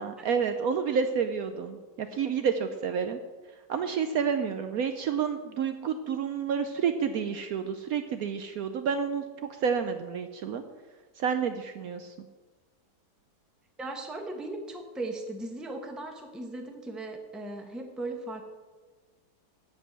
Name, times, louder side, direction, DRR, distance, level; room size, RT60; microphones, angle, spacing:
voice 1, 0.0-3.2 3.7-9.2 9.6-10.6 11.2-12.1, right 6 dB, 65° right, 8 dB, 1.0 m, -29 dB
voice 2, 13.8-18.5, right 2 dB, ahead, 3 dB, 0.8 m, -37 dB
8.1 x 7.5 x 8.0 m, 1.3 s
omnidirectional pair, 1.8 m